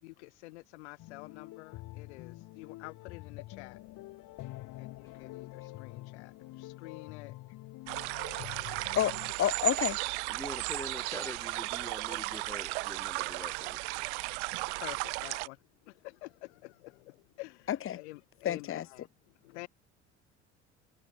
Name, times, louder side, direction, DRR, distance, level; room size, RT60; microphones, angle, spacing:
voice 1, 0.0-3.8 4.8-7.3 14.8-19.7, left 23 dB, 80° left, 2.9 m, -49 dB
sound 1, 1.0-9.3, left 18 dB, 60° left, 1.6 m, -46 dB
sound 2, 7.9-15.5, right 28 dB, 75° right, 0.8 m, -35 dB
voice 2, 9.0-10.0 17.7-18.0 18.4-18.8, left 11 dB, 40° left, 0.9 m, -30 dB
voice 3, 10.3-13.8, left 2 dB, 10° left, 1.1 m, -44 dB
hypercardioid pair, 65°, 34 cm